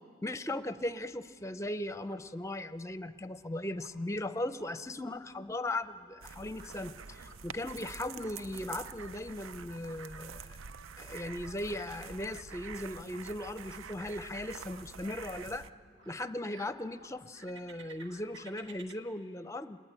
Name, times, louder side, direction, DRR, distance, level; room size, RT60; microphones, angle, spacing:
voice 1, 0.2-10.6 11.0-15.6 16.1-19.8, left 1 dB, 15° left, 12 dB, 0.5 m, -38 dB
sound 1, 0.6-18.9, right 3 dB, 65° right, 2.0 m, -59 dB
sound 2, 6.2-15.7, right 6 dB, 85° right, 0.6 m, -47 dB
26.5 x 21.5 x 9.0 m, 2.4 s
head